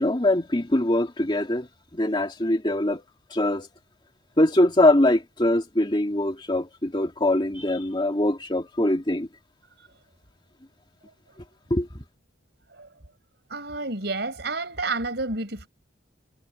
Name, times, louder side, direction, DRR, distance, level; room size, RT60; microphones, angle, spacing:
voice 1, 0.0-3.0 3.3-3.7 4.4-9.3 11.7-12.0, left 1 dB, 25° left, 2.4 m, -23 dB
voice 2, 13.5-15.7, right 3 dB, 60° right, 5.6 m, -30 dB
head